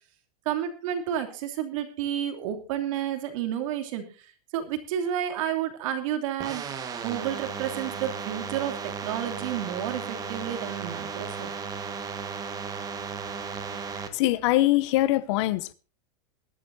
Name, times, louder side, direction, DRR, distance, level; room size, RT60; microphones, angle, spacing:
voice 1, 0.4-4.3 4.5-6.6 7.0-11.5, right 10 dB, 55° right, 2.9 m, -31 dB
sound 1, 6.4-14.1, right 6 dB, 20° right, 1.6 m, -35 dB
voice 2, 14.1-15.7, left 16 dB, 45° left, 0.8 m, -23 dB
21.0 x 12.5 x 2.7 m
supercardioid pair, 155°, 20 cm